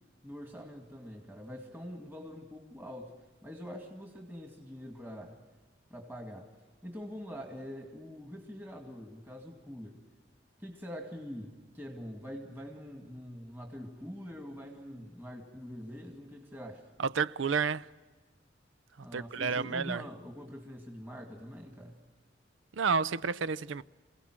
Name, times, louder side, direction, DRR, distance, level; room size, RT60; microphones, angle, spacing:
voice 1, 0.2-3.2 3.4-5.4 5.9-6.5 6.8-10.0 10.6-16.9 19.0-22.0, equal, 10° right, 2.2 m, -44 dB
voice 2, 17.0-17.9 19.1-20.0 22.7-23.8, right 5 dB, 85° right, 0.5 m, -30 dB
27.5 x 17.5 x 6.2 m
head